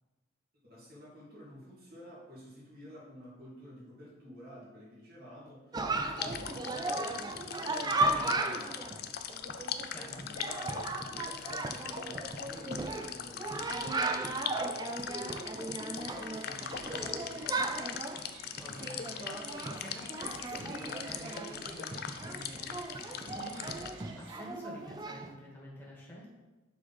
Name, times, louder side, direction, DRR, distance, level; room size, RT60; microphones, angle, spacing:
voice 1, 0.6-9.2 10.1-18.0, equal, 50° right, -6 dB, 2.4 m, -50 dB
Chatter, 5.7-25.3, right 2 dB, 20° right, 0.4 m, -36 dB
sound 1, 6.2-23.9, left 8 dB, 50° left, 0.4 m, -41 dB
voice 2, 9.9-10.3 18.6-26.3, left 1 dB, 10° left, -5 dB, 1.7 m, -49 dB
sound 2, 16.0-24.4, right 4 dB, 65° right, 0.8 m, -54 dB
7.1 x 4.5 x 4.1 m, 1.1 s
head